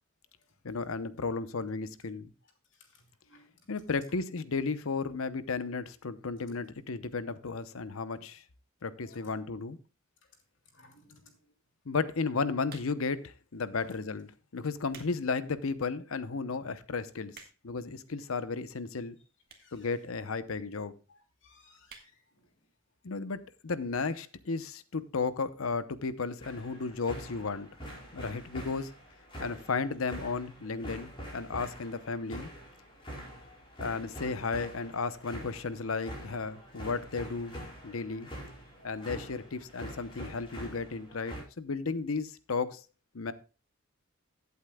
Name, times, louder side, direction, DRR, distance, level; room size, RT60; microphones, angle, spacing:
voice 1, 0.6-2.3 3.7-8.4 8.8-9.8 11.9-17.4 17.6-19.2 19.7-20.9 23.0-23.4 23.6-27.7 28.1-28.9 29.4-32.5 33.8-37.6 37.8-38.3 38.8-42.8 43.1-43.3, left 4 dB, 80° left, 0.8 m, -34 dB
voice 2, 10.7-11.3 19.6-19.9 21.1-21.2 21.4-22.2 38.8-38.9, left 2 dB, 60° left, 2.9 m, -59 dB
sound 1, 12.6-13.2 13.9-14.1 14.6-15.2 15.6-15.7 16.3-16.4 16.6-16.7 17.0-17.8 18.6-18.7 19.4-19.8 20.1-20.2 20.4-20.5 20.7-20.8 21.1-21.4 21.8-22.1 22.5-22.6 22.8-22.9, right 6 dB, 45° right, 1.6 m, -52 dB
sound 2, 26.4-41.4, equal, 25° left, 4.8 m, -45 dB
16.0 x 8.3 x 2.3 m
head